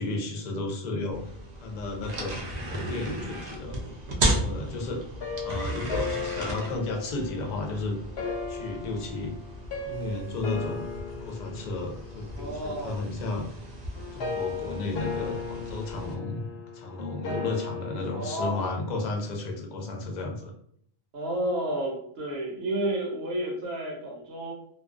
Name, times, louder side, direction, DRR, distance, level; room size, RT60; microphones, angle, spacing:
voice 1, 0.0-1.3 1.6-3.8 4.3-5.0 5.4-8.0 8.5-9.3 9.9-10.8 11.2-13.5 14.1-20.5, left 2 dB, 50° left, 2 dB, 0.6 m, -33 dB
sound 1, 1.1-16.1, right 1 dB, 55° right, 0.5 m, -35 dB
sound 2, 5.2-18.6, left 5 dB, 90° left, 0.9 m, -36 dB
voice 2, 12.3-13.0 18.1-18.8 21.1-24.5, right 1 dB, 75° right, -1 dB, 1.0 m, -31 dB
2.3 x 2.3 x 2.4 m, 0.67 s
omnidirectional pair, 1.0 m